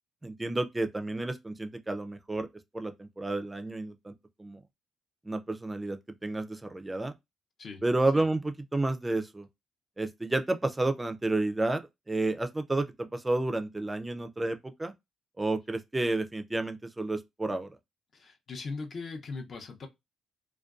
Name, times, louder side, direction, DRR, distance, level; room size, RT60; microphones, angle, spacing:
voice 1, 0.2-2.5 2.7-4.1 4.4-4.6 5.3-7.1 7.8-9.5 10.0-11.8 12.1-14.9 15.4-17.7, right 2 dB, 15° right, 0.4 m, -31 dB
voice 2, 18.1-19.9, left 4 dB, 50° left, 0.6 m, -39 dB
2.5 x 2.2 x 2.3 m
cardioid pair, 90°, 0 cm